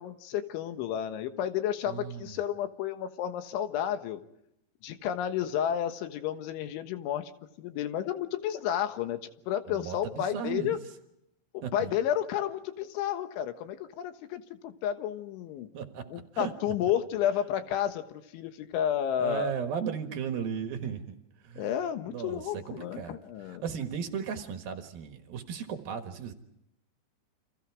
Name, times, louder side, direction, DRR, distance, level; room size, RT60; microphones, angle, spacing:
voice 1, 0.0-4.2 4.8-7.3 7.6-10.8 11.5-15.7 16.1-19.5 21.6-23.6, left 10 dB, 85° left, 8 dB, 3.8 m, -31 dB
voice 2, 1.9-2.4 9.7-10.8 11.6-11.9 15.7-16.1 16.3-16.5 16.8-16.9 19.2-21.2 21.4-21.7 22.1-23.2 23.4-26.3, right 7 dB, 60° right, 6 dB, 3.0 m, -36 dB
29.5 x 27.0 x 4.8 m, 0.81 s
omnidirectional pair, 5.3 m